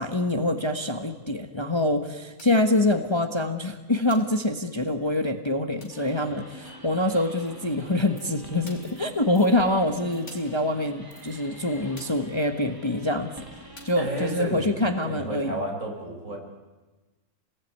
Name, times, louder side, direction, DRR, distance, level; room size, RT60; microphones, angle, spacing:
voice 1, 0.0-13.3 13.8-15.5, left 1 dB, 20° left, 6 dB, 1.4 m, -25 dB
sound 1, 2.4-2.7 4.1-4.4 5.8-6.1 7.9-8.0 8.7-9.0 10.3-10.6 12.0-12.3 13.8-14.1, left 1 dB, 50° left, 5.0 m, -48 dB
sound 2, 5.9-14.4, right 1 dB, 15° right, 3.1 m, -46 dB
voice 2, 14.0-16.4, right 1 dB, 60° right, 1 dB, 5.8 m, -32 dB
29.5 x 20.0 x 9.6 m, 1.2 s
omnidirectional pair, 1.6 m